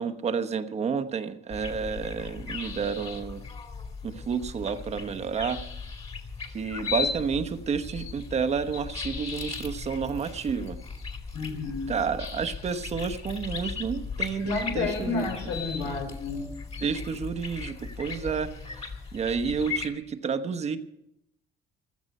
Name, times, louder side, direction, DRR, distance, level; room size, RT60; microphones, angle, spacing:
voice 1, 0.0-3.4 4.0-5.6 6.5-10.8 11.6-15.3 16.8-20.8, right 6 dB, 35° right, 9 dB, 1.0 m, -30 dB
sound 1, 1.5-19.9, left 5 dB, 35° left, 2.5 m, -37 dB
voice 2, 11.3-11.9 14.4-16.5, left 4 dB, 90° left, 3 dB, 4.5 m, -31 dB
15.5 x 13.0 x 5.4 m, 0.81 s
cardioid pair, 140°, 19 cm